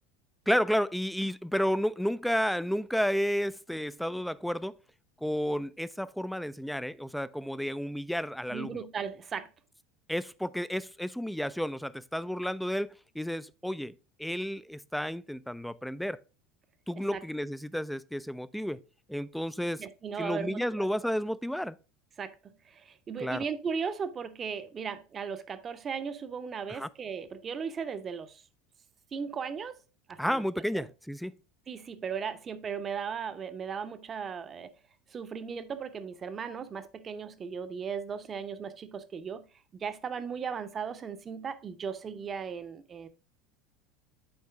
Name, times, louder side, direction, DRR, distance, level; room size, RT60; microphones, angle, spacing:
voice 1, 0.5-4.7 5.2-8.9 10.1-13.9 14.2-16.2 16.9-18.8 19.1-19.8 20.2-21.8 23.2-23.4 26.7-26.9 30.2-31.4, equal, ahead, 0.3 m, -31 dB
voice 2, 8.5-9.5 17.1-17.2 19.8-20.9 22.2-28.4 29.1-29.8 30.1-30.4 30.7-30.9 31.7-34.7 35.1-39.5 39.7-43.1, right 6 dB, 30° right, 0.7 m, -37 dB
7.9 x 4.4 x 3.5 m
figure-of-eight pair, 75°, 0 cm